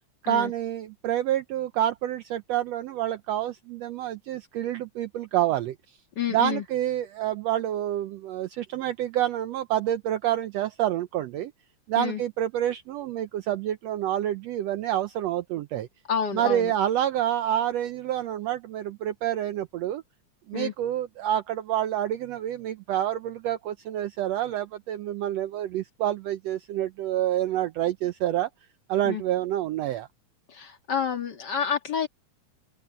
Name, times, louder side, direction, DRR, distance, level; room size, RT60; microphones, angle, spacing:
voice 1, 0.2-5.7 6.3-11.5 11.9-15.9 16.3-20.0 20.5-28.5 28.9-30.1, right 12 dB, 75° right, 1.6 m, -28 dB
voice 2, 6.2-6.6 12.0-12.2 16.1-16.7 20.5-20.7 29.1-29.2 30.5-32.1, left 7 dB, 40° left, 2.0 m, -29 dB
omnidirectional pair, 3.5 m